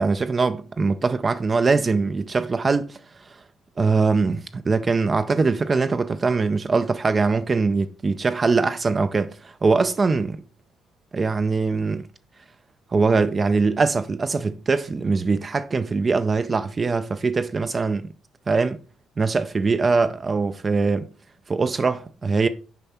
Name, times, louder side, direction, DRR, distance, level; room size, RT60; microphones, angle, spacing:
voice 1, 0.0-3.0 3.8-10.4 11.1-12.1 12.9-18.1 18.5-18.8 19.2-21.1 21.5-22.5, right 4 dB, 25° right, 0.4 m, -22 dB
6.9 x 4.6 x 4.2 m
cardioid pair, 120°, 0 cm